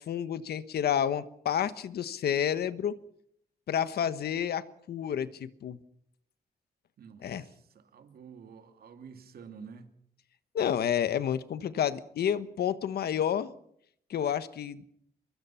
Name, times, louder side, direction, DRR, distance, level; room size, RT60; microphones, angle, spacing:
voice 1, 0.0-3.0 3.7-5.8 7.2-7.4 10.5-13.5 14.1-14.8, left 9 dB, 75° left, 1.3 m, -30 dB
voice 2, 7.0-9.9, right 6 dB, 70° right, 2.5 m, -49 dB
24.0 x 22.0 x 5.8 m
wide cardioid pair, 155°, 16 cm